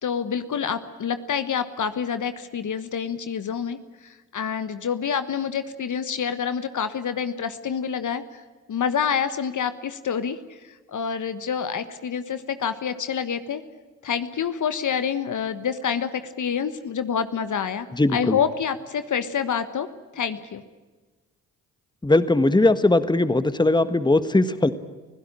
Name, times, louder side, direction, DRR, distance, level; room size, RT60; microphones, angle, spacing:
voice 1, 0.0-3.8 4.0-8.4 8.7-10.6 10.9-13.6 14.0-17.9 18.1-19.9 20.1-20.6, left 7 dB, 50° left, 11 dB, 1.4 m, -27 dB
voice 2, 17.9-18.4 22.0-24.7, left 2 dB, 10° left, 12 dB, 1.5 m, -19 dB
25.0 x 16.5 x 10.0 m, 1.3 s
hypercardioid pair, 40°, 38 cm